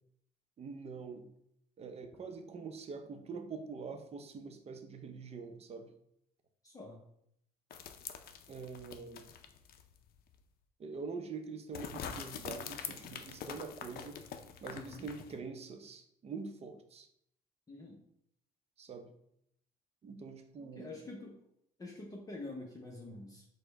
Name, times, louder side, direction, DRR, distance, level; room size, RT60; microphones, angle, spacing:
voice 1, 0.6-1.3 1.8-5.9 8.5-9.3 10.8-14.2 14.6-17.1 18.8-19.1 20.0-21.0, right 4 dB, 40° right, 7 dB, 0.6 m, -45 dB
voice 2, 6.6-7.0 14.7-15.1 17.7-18.0 20.6-21.4 21.8-23.4, left 2 dB, 20° left, -1 dB, 0.7 m, -47 dB
sound 1, 7.7-10.0 10.3-10.4 11.7-15.4, left 8 dB, 65° left, 0.5 m, -45 dB
4.9 x 2.1 x 4.5 m, 0.73 s
cardioid pair, 110°, 17 cm